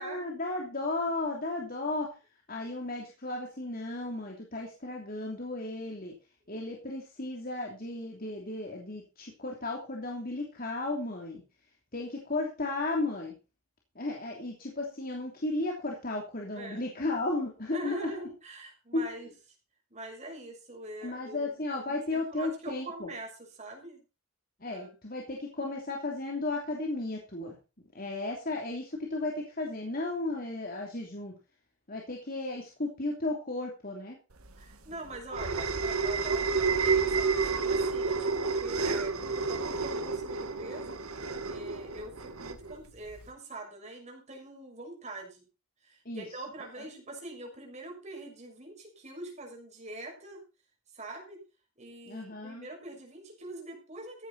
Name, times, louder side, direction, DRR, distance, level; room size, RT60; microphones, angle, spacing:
voice 1, 0.0-2.1 2.5-6.1 6.5-11.4 11.9-13.3 13.9-18.1 18.9-19.1 21.0-23.1 24.6-27.5 27.9-31.3 31.9-34.2 46.0-46.2 52.1-52.7, left 2 dB, 40° left, 0 dB, 3.1 m, -34 dB
voice 2, 16.5-16.8 17.7-19.3 19.9-21.5 21.9-24.0 24.6-24.9 34.6-40.9 41.2-45.4 45.8-50.4 50.9-51.4 51.8-54.3, right 2 dB, 30° right, 1 dB, 6.3 m, -44 dB
sound 1, 34.4-43.3, right 4 dB, 85° right, 2.0 m, -30 dB
15.0 x 10.5 x 4.2 m, 0.32 s
head